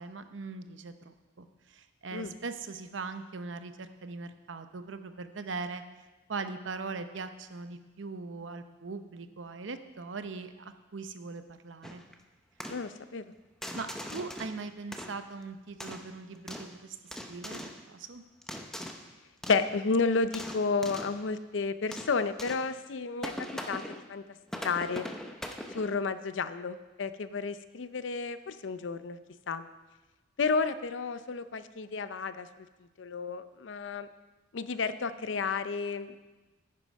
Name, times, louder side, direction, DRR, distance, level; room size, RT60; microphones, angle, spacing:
voice 1, 0.0-5.8 6.3-12.0 13.7-17.0 17.3-18.2, right 4 dB, 75° right, 9 dB, 0.7 m, -40 dB
sound 1, 11.8-12.1 12.6-12.9 13.6-14.6 14.9-15.4 15.8-16.8 17.1-17.8 18.4-19.1 19.4-19.7 20.1-21.2 21.9-22.7 23.2-24.1 24.5-26.0, equal, 5° left, 0.7 m, -41 dB
voice 2, 12.7-13.3 19.5-24.2 24.6-25.0 25.7-29.2 29.5-29.6 30.4-32.7 33.0-34.1 34.5-36.2, left 4 dB, 70° left, 12 dB, 0.5 m, -31 dB
9.9 x 9.8 x 5.3 m, 1.2 s
head